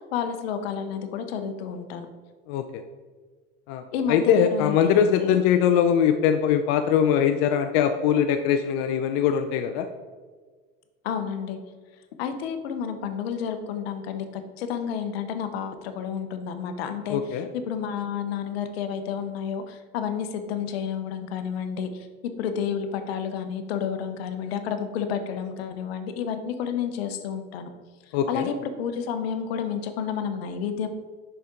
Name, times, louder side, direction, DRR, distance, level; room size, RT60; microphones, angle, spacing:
voice 1, 0.1-2.1 3.9-5.4 11.0-11.6 12.2-22.1 22.4-27.7 28.3-30.9, left 7 dB, 85° left, 8 dB, 0.9 m, -30 dB
voice 2, 2.5-2.8 3.7-3.8 4.1-9.9 17.1-17.5 28.1-28.5, left 8 dB, 65° left, 7 dB, 0.5 m, -22 dB
6.8 x 5.8 x 3.7 m, 1.5 s
supercardioid pair, 100°, 30 cm